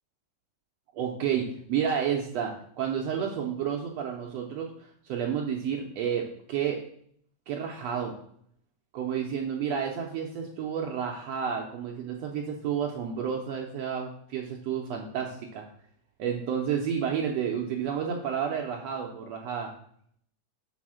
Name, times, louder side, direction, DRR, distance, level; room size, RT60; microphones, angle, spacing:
voice 1, 0.9-6.8 7.5-8.1 8.9-15.6 16.2-19.7, right 8 dB, 85° right, 1 dB, 1.5 m, -31 dB
6.2 x 4.2 x 6.1 m, 0.66 s
omnidirectional pair, 3.8 m